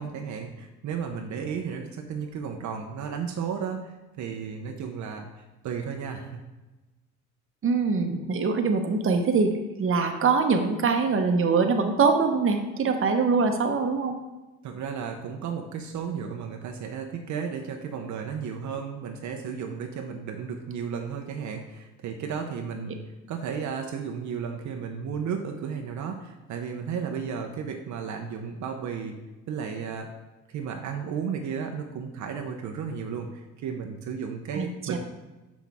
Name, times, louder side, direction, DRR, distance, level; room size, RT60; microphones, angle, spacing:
voice 1, 0.0-5.3 5.6-6.4 14.6-23.0 23.3-29.2 29.5-30.1 30.5-35.0, right 6 dB, 75° right, 3 dB, 0.7 m, -34 dB
voice 2, 7.6-9.5 9.8-14.1 34.5-35.0, right 4 dB, 45° right, 5 dB, 0.9 m, -23 dB
6.1 x 5.9 x 3.5 m, 1.1 s
cardioid pair, 90°, 30 cm